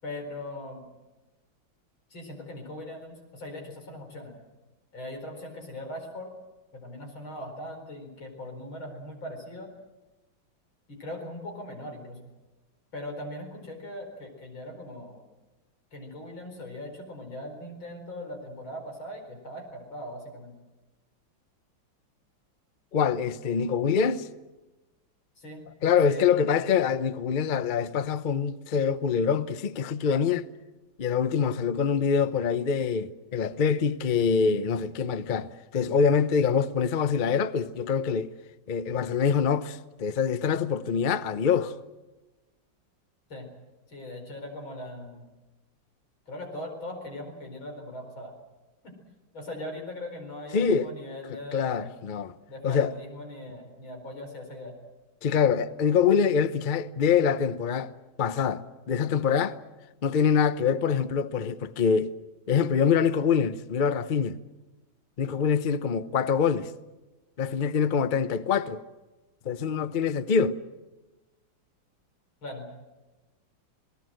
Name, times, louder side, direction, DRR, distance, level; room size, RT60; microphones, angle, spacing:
voice 1, 0.0-0.9 2.1-4.3 4.9-6.3 6.7-9.7 10.9-12.3 12.9-15.2 15.9-20.6 25.4-25.6 26.1-26.3 43.3-43.5 43.9-45.3 46.3-48.3 48.8-48.9 49.3-51.9 52.5-54.7 72.4-72.7, left 1 dB, 85° left, 5.4 m, -40 dB
voice 2, 22.9-24.3 25.8-30.5 31.0-38.3 38.7-41.8 50.5-50.9 51.5-52.3 52.6-52.9 55.2-57.9 58.2-59.6 60.0-62.1 62.5-64.4 65.2-66.7 67.4-68.8 69.4-70.6, left 6 dB, 65° left, 0.4 m, -25 dB
27.5 x 19.0 x 7.7 m
omnidirectional pair, 2.1 m